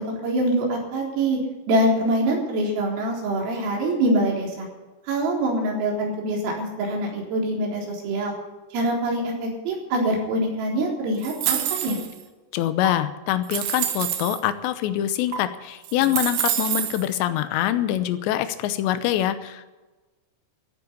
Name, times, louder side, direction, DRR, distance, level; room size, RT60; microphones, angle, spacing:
voice 1, 0.0-1.4 1.7-4.7 5.1-8.3 8.7-12.0, right 1 dB, 90° right, -1 dB, 6.5 m, -24 dB
sound 1, 11.2-12.2 12.8-12.9 13.4-14.4 15.3-15.4 15.8-17.1, right 11 dB, 75° right, 3.5 m, -27 dB
voice 2, 12.5-19.7, left 12 dB, 80° left, 11 dB, 2.7 m, -24 dB
15.0 x 9.7 x 8.3 m, 1.2 s
omnidirectional pair, 5.8 m